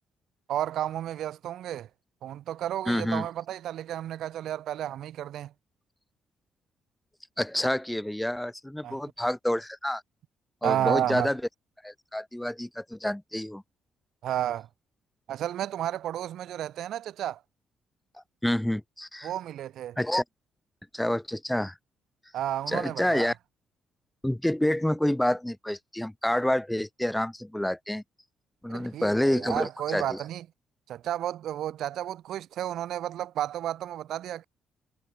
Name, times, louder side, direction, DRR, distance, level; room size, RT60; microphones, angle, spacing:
voice 1, 0.5-1.9 2.2-5.5 8.8-9.0 10.6-11.3 14.2-14.7 15.3-17.4 19.2-20.0 22.3-23.3 28.7-30.5 30.9-34.5, right 11 dB, 75° right, 2.6 m, -32 dB
voice 2, 2.9-3.3 7.4-10.0 10.6-11.4 11.8-13.6 18.4-19.3 20.0-20.2 20.9-21.7 22.7-23.3 24.2-28.0 28.6-30.2, left 1 dB, 5° left, 2.8 m, -28 dB
cardioid pair, 90°, 0 cm